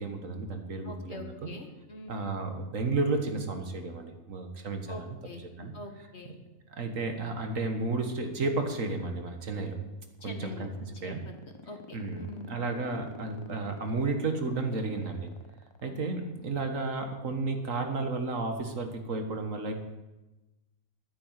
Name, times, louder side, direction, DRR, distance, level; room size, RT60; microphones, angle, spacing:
voice 1, 0.0-1.3 2.1-5.2 5.6-5.7 6.8-9.8 10.2-10.7 11.0-11.2 11.9-15.3 15.8-19.7, right 3 dB, 60° right, 5 dB, 1.7 m, -32 dB
voice 2, 0.8-2.1 4.9-5.4 5.7-6.3 10.2-10.7 11.0-11.3 11.6-12.6 15.8-15.9, left 2 dB, 45° left, 4 dB, 1.8 m, -44 dB
sound 1, 9.8-16.4, left 3 dB, 20° left, 0.8 m, -49 dB
12.0 x 9.6 x 7.5 m, 1.1 s
omnidirectional pair, 1.6 m